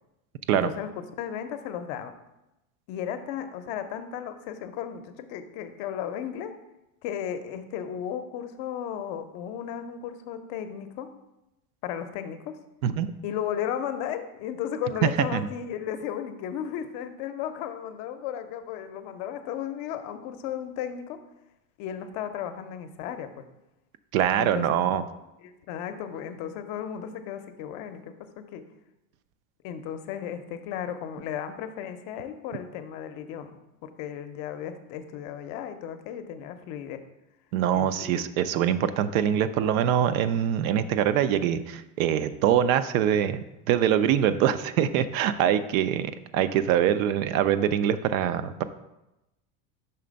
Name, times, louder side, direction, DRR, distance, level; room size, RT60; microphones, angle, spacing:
voice 1, 0.5-2.1 2.9-6.5 7.0-11.1 11.8-12.6 13.2-21.2 21.8-23.4 24.3-24.6 25.4-28.6 29.6-33.5 33.8-37.0 37.7-38.1, left 9 dB, 50° left, 8 dB, 0.6 m, -35 dB
voice 2, 15.0-15.4 24.1-25.0 37.5-48.6, right 10 dB, 70° right, 12 dB, 0.5 m, -24 dB
5.7 x 3.3 x 5.1 m, 0.93 s
supercardioid pair, 130°, 42 cm